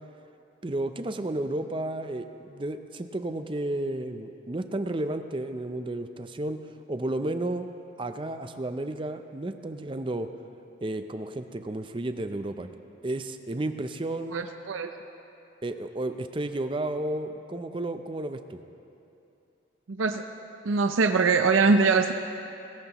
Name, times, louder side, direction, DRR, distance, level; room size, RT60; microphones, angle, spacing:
voice 1, 0.6-6.6 6.9-7.7 8.0-10.3 10.8-12.7 13.0-14.5 15.6-18.6, right 1 dB, 25° right, 8 dB, 0.5 m, -32 dB
voice 2, 14.3-14.9 19.9-20.2 20.6-22.1, right 4 dB, 85° right, 6 dB, 0.6 m, -22 dB
18.5 x 16.5 x 3.0 m, 2.8 s
head